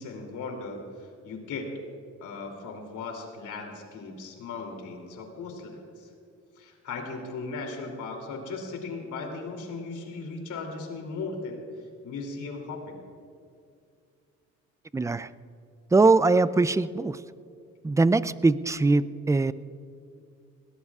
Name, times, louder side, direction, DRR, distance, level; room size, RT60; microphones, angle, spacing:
voice 1, 0.0-1.7 2.2-6.1 6.6-11.6 12.0-13.0, left 4 dB, 80° left, 2 dB, 3.0 m, -37 dB
voice 2, 14.9-15.3 15.9-17.2 17.8-19.5, right 3 dB, 10° right, 16 dB, 0.3 m, -22 dB
20.5 x 18.0 x 2.4 m, 2.4 s
cardioid pair, 90°, 30 cm